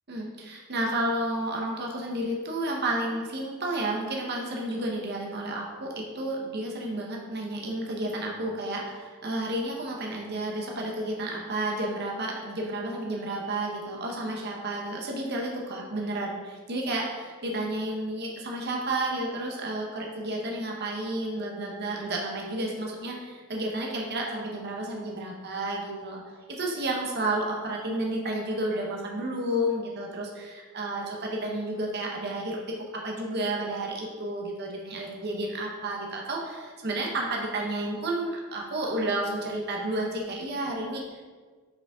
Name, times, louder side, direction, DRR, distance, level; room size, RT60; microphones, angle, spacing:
voice 1, 0.1-26.2 26.5-32.6 32.9-41.2, right 1 dB, 55° right, -1 dB, 1.0 m, -31 dB
6.3 x 5.1 x 3.6 m, 1.5 s
head